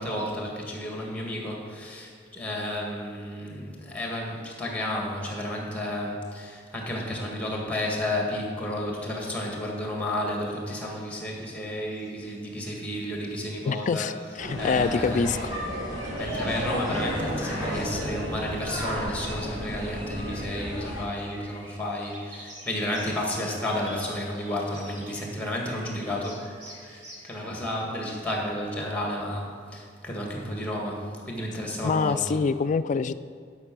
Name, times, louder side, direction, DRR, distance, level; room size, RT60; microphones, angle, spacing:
voice 1, 0.0-14.1 14.6-15.2 16.2-32.4, left 1 dB, 10° left, 0 dB, 1.7 m, -32 dB
sound 1, 9.7-27.4, right 1 dB, 70° right, 2.1 m, -50 dB
voice 2, 13.7-15.5 31.8-33.1, left 5 dB, 40° left, 13 dB, 0.3 m, -25 dB
sound 2, 14.4-21.0, equal, 20° right, 3.1 m, -32 dB
11.0 x 5.9 x 6.1 m, 2.1 s
head